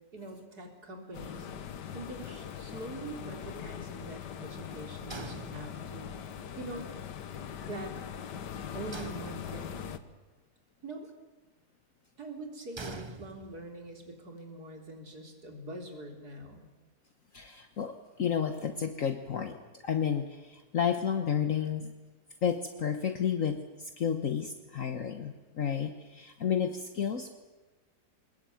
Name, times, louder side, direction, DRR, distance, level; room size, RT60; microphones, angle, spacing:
voice 1, 0.1-1.5 1.9-6.1 6.6-6.9 7.6-7.9 8.7-10.0 10.8-11.1 12.2-16.7, right 2 dB, 65° right, 3 dB, 4.1 m, -43 dB
sound 1, 1.1-10.0, left 8 dB, 90° left, 1.8 m, -41 dB
sound 2, 5.1-6.2 8.9-9.9 12.8-13.9, right 3 dB, 25° right, 0.6 m, -44 dB
voice 2, 17.3-21.9 22.4-27.3, left 8 dB, 55° left, 7 dB, 1.5 m, -31 dB
22.5 x 21.0 x 9.3 m, 1.2 s
omnidirectional pair, 1.8 m